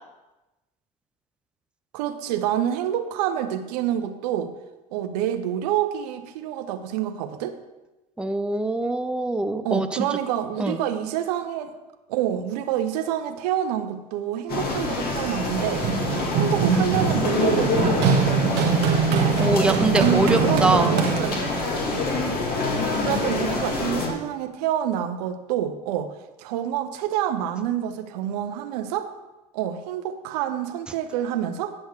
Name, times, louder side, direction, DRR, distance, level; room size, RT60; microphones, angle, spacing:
voice 1, 1.9-4.5 4.9-7.6 9.6-11.7 12.1-15.9 16.3-18.2 19.6-21.4 23.0-26.1 26.4-29.1 29.5-31.7, right 10 dB, 75° right, 9 dB, 0.8 m, -27 dB
voice 2, 8.2-10.1 10.6-10.8 19.4-21.0, right 2 dB, 5° right, 8 dB, 0.6 m, -23 dB
sound 1, 14.5-24.1, left 3 dB, 50° left, 2.1 m, -26 dB
Run, 15.2-21.6, right 6 dB, 55° right, 1.1 m, -23 dB
9.8 x 6.4 x 4.7 m, 1.1 s
hypercardioid pair, 75°, 21 cm